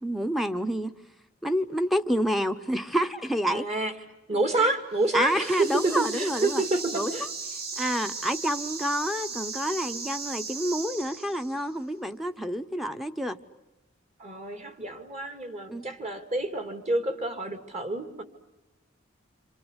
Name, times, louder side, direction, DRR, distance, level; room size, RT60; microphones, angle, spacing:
voice 1, 0.0-0.9 1.4-3.6 5.1-6.6 6.9-7.1 7.8-13.4 15.7-15.8, equal, ahead, 5 dB, 0.9 m, -28 dB
voice 2, 3.5-3.9 4.3-7.3 14.2-18.2, right 2 dB, 35° right, 7 dB, 2.5 m, -28 dB
sound 1, 4.9-11.7, right 4 dB, 50° right, 2.1 m, -37 dB
27.5 x 26.5 x 8.2 m, 0.97 s
head